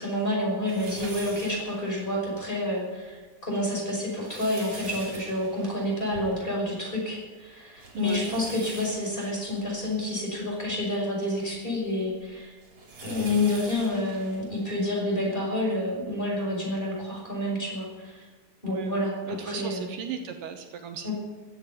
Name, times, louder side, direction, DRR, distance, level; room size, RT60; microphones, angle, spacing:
voice 1, 0.0-12.5 13.0-18.2 18.6-19.9 21.0-21.1, left 1 dB, 15° left, -2 dB, 5.5 m, -29 dB
sound 1, 0.7-2.5 3.0-3.1 3.9-6.9 7.1-7.2 7.8-10.8 11.4-15.3 16.0-16.1 17.4-17.5, right 2 dB, 45° right, 4.6 m, -44 dB
voice 2, 7.9-8.4 18.6-21.1, right 6 dB, 75° right, 5 dB, 2.6 m, -36 dB
15.5 x 9.3 x 9.4 m, 1.3 s
omnidirectional pair, 4.0 m